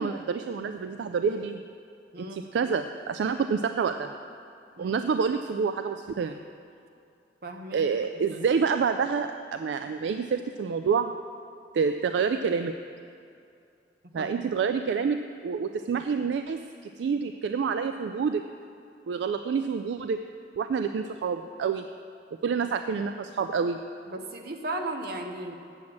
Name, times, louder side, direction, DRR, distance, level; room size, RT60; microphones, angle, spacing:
voice 1, 0.0-1.6 2.2-4.1 4.8-6.4 7.7-11.1 11.7-12.7 14.1-16.6 17.0-18.4 19.1-20.2 20.6-21.8 22.4-23.8, right 5 dB, 75° right, 8 dB, 0.3 m, -28 dB
voice 2, 2.1-2.5 4.8-5.0 7.4-7.8 14.0-14.4 24.1-25.5, right 1 dB, 60° right, 5 dB, 0.9 m, -36 dB
7.9 x 7.3 x 7.4 m, 2.5 s
head